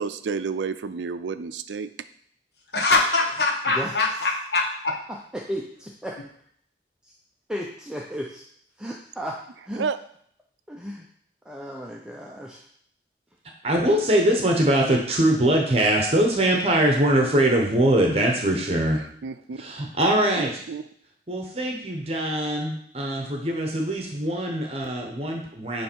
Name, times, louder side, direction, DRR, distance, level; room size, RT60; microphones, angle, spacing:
voice 1, 0.0-1.9 9.8-10.0 19.2-19.7 20.4-20.8, right 5 dB, 90° right, 12 dB, 0.4 m, -30 dB
voice 2, 2.7-5.0, left 3 dB, 70° left, 0 dB, 1.3 m, -23 dB
voice 3, 3.7-4.3 5.1-5.6 6.0-6.1 7.5-8.4 8.8-9.9 10.7-11.1 11.4-12.6, equal, 5° right, -1 dB, 0.5 m, -34 dB
voice 4, 13.6-19.0 19.6-20.6 21.3-25.8, right 1 dB, 35° right, 1 dB, 0.9 m, -22 dB
9.2 x 3.3 x 4.5 m, 0.65 s
head